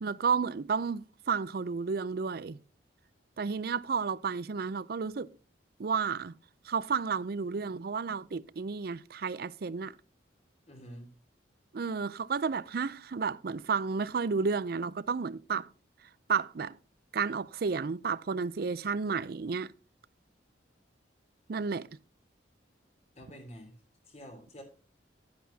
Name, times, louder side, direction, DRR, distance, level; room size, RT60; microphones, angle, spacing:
voice 1, 0.0-2.6 3.4-5.3 5.8-6.3 6.7-9.9 11.7-15.7 16.3-16.8 17.1-19.7 21.5-21.9, right 5 dB, 55° right, 0.4 m, -32 dB
voice 2, 10.7-11.1 23.1-23.7 24.1-24.6, equal, 35° left, 3.2 m, -48 dB
11.5 x 10.0 x 2.7 m
head